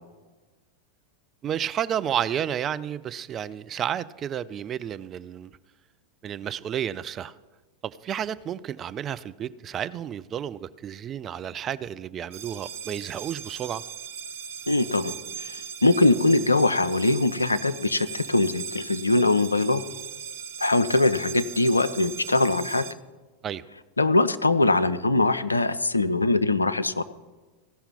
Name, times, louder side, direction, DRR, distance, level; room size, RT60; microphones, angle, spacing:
voice 1, 1.4-5.5 6.2-7.3 8.0-13.8 23.4-23.6, right 9 dB, 30° right, 14 dB, 0.4 m, -31 dB
sound 1, 12.3-22.9, right 8 dB, 55° right, 0.7 m, -39 dB
voice 2, 14.7-19.8 20.6-22.8 24.0-27.0, left 2 dB, 80° left, 12 dB, 0.4 m, -22 dB
15.5 x 5.7 x 5.7 m, 1.3 s
figure-of-eight pair, 90°, 0 cm